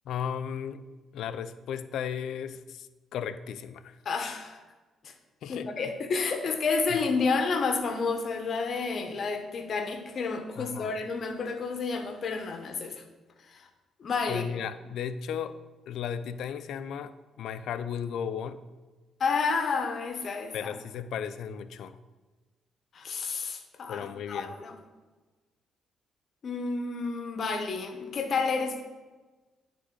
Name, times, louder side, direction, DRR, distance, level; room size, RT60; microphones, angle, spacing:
voice 1, 0.1-0.8 1.1-4.0 5.4-5.9 6.9-7.0 10.6-11.0 14.3-15.6 15.9-18.6 20.5-22.0 23.9-24.5, left 8 dB, 75° left, 13 dB, 0.3 m, -35 dB
voice 2, 4.0-4.6 5.0-5.1 5.5-12.9 13.5-13.6 14.0-14.4 19.2-20.7 22.9-24.7 26.4-28.8, left 4 dB, 55° left, 7 dB, 0.8 m, -30 dB
9.4 x 3.6 x 3.7 m, 1.3 s
cardioid pair, 90°, 0 cm